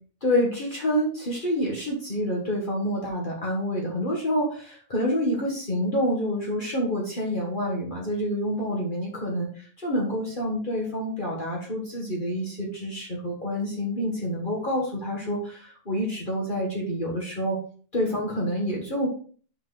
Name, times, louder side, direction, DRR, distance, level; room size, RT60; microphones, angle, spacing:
voice 1, 0.2-17.6 17.9-19.1, equal, 40° left, -3 dB, 2.0 m, -27 dB
7.1 x 5.8 x 4.0 m, 0.43 s
omnidirectional pair, 1.3 m